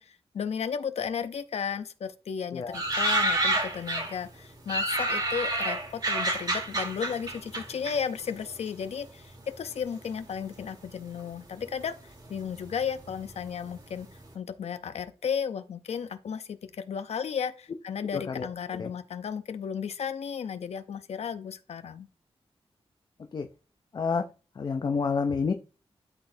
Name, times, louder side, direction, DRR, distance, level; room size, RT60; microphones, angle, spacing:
voice 1, 0.0-12.0 12.3-14.1 14.3-22.1, left 7 dB, 85° left, 0.6 m, -34 dB
sound 1, 2.7-4.2 4.7-8.6 8.8-9.7 10.3-10.9 11.1-11.2 11.5-13.8 14.1-14.2, right 1 dB, 40° right, 1.6 m, -29 dB
voice 2, 18.1-18.5 18.8-18.9 23.3-23.5 23.9-24.2 24.6-25.5, left 5 dB, 40° left, 0.5 m, -28 dB
12.0 x 4.0 x 2.7 m
wide cardioid pair, 175°, 11 cm